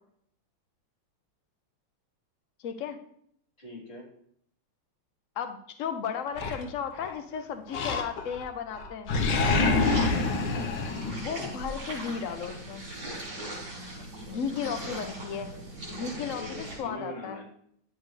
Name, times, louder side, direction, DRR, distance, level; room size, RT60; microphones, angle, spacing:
voice 1, 2.6-3.0 5.4-9.1 11.2-12.8 14.3-15.5 15.9-17.4, left 7 dB, 85° left, 7 dB, 0.6 m, -35 dB
voice 2, 3.6-4.0 9.5-10.3 13.9-15.0 15.9-17.5, left 2 dB, 25° left, -6 dB, 3.5 m, -43 dB
Animal, 6.4-7.2 7.7-8.5 8.8-11.7, left 3 dB, 65° left, 1.5 m, -27 dB
sound 1, 9.8-16.8, right 1 dB, 75° right, 4.0 m, -40 dB
11.0 x 7.5 x 3.2 m, 0.69 s
omnidirectional pair, 2.2 m